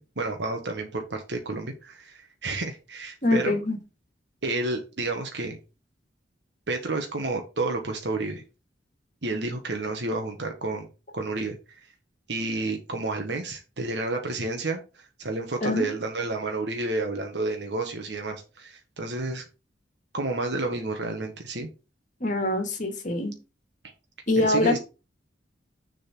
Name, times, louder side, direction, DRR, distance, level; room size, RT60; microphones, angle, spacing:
voice 1, 0.2-3.6 4.4-5.6 6.7-8.4 9.2-10.9 11.1-11.8 12.3-19.4 20.1-21.7 24.4-24.8, right 2 dB, 75° right, 3 dB, 1.2 m, -30 dB
voice 2, 3.2-3.8 15.6-15.9 22.2-23.3 24.3-24.7, left 2 dB, 45° left, 6 dB, 1.9 m, -24 dB
6.7 x 4.0 x 6.0 m, 0.31 s
head